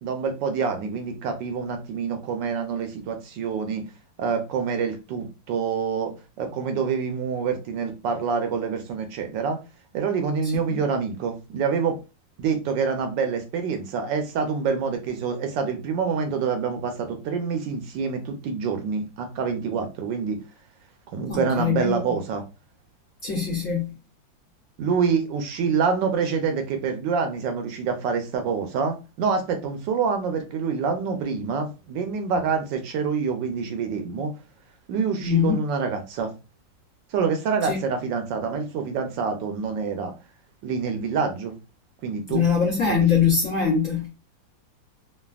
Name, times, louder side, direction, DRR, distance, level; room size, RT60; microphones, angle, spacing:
voice 1, 0.0-3.8 4.2-9.6 9.9-12.0 12.4-20.4 21.1-22.5 24.8-34.3 34.9-36.3 37.1-40.1 40.6-41.5 42.0-42.4 42.8-43.0, right 5 dB, 75° right, 1.2 m, -26 dB
voice 2, 21.3-22.0 23.2-23.9 35.2-35.6 37.6-37.8 42.3-44.1, left 6 dB, 60° left, 0.9 m, -22 dB
3.2 x 2.3 x 2.3 m
omnidirectional pair, 2.1 m